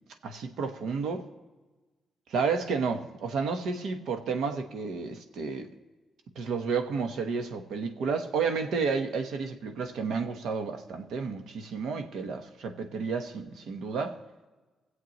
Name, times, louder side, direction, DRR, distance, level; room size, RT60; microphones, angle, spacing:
voice 1, 0.2-1.2 2.3-5.7 6.3-14.2, right 5 dB, 80° right, 6 dB, 1.2 m, -31 dB
21.5 x 7.9 x 3.1 m, 1.2 s
cardioid pair, 90°, 0 cm